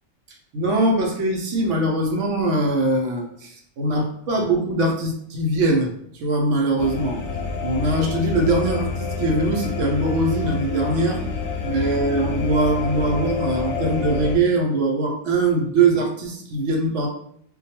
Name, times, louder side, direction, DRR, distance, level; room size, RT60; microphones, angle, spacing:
voice 1, 0.5-7.2 7.6-11.2 11.6-17.1, right 2 dB, 80° right, 2 dB, 0.9 m, -22 dB
sound 1, 6.8-14.3, left 4 dB, 60° left, 0.7 m, -28 dB
2.2 x 2.2 x 2.7 m, 0.67 s
omnidirectional pair, 1.3 m